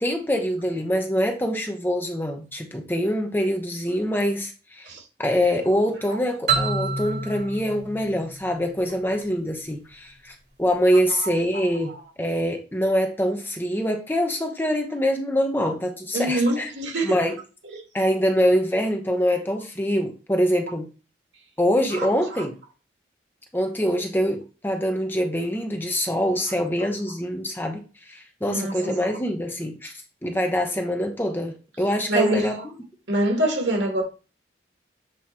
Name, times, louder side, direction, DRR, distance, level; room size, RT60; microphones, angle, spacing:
voice 1, 0.0-4.9 5.2-10.3 10.6-11.9 12.2-16.7 17.0-17.4 17.9-20.9 21.6-22.5 23.5-27.8 28.1-29.9 30.2-32.6, equal, 10° left, 0.8 m, -24 dB
sound 1, 6.5-9.2, right 4 dB, 75° right, 3.6 m, -28 dB
voice 2, 16.1-17.2 17.7-17.8 21.9-22.5 28.5-29.0 32.1-32.7 33.1-34.0, right 1 dB, 90° right, 1.9 m, -25 dB
7.6 x 3.0 x 4.3 m
head